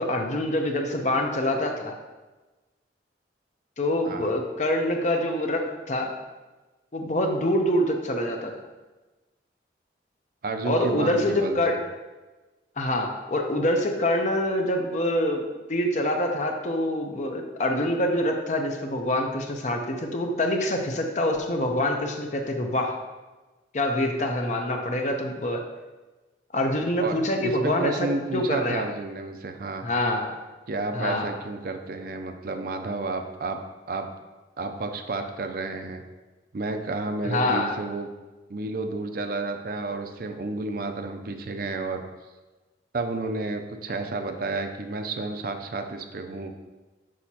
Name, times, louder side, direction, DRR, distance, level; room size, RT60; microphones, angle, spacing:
voice 1, 0.0-1.9 3.8-6.1 6.9-8.5 10.6-11.8 12.8-23.0 23.7-25.6 26.5-28.8 29.8-30.4 30.9-31.3 37.2-37.7, left 1 dB, 40° left, 3 dB, 0.7 m, -25 dB
voice 2, 10.4-11.8 27.0-29.9 30.7-33.6 33.9-34.1 34.6-36.0 36.5-38.1 38.5-42.0 42.9-46.5, right 3 dB, 55° right, 6 dB, 0.5 m, -31 dB
6.3 x 6.0 x 2.8 m, 1.2 s
head